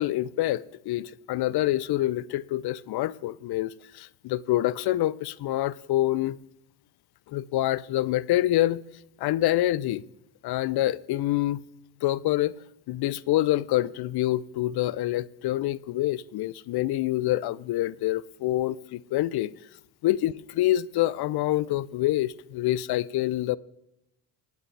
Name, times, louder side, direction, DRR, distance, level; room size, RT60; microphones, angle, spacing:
voice 1, 0.0-6.4 7.3-8.8 9.2-10.0 10.4-11.6 12.0-12.6 12.9-19.5 20.0-23.6, left 15 dB, 55° left, 0.6 m, -26 dB
19.5 x 8.9 x 3.3 m
hypercardioid pair, 60°, 49 cm